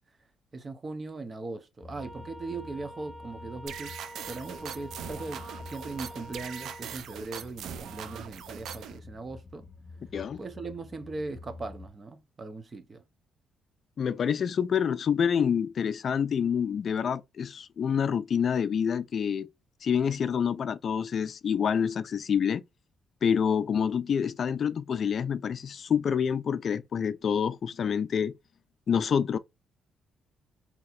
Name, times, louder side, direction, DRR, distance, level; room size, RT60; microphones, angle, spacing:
voice 1, 0.5-4.0 4.3-9.7 10.4-13.0, right 3 dB, 35° right, 0.7 m, -39 dB
sound 1, 1.8-11.9, left 3 dB, 35° left, 0.8 m, -49 dB
sound 2, 2.0-6.8, equal, 15° right, 1.4 m, -47 dB
sound 3, 3.7-9.0, right 8 dB, 75° right, 0.5 m, -41 dB
voice 2, 14.0-19.5 19.8-22.6 23.2-28.3 28.9-29.4, left 7 dB, 55° left, 0.3 m, -27 dB
4.0 x 2.9 x 2.5 m
cardioid pair, 90°, 0 cm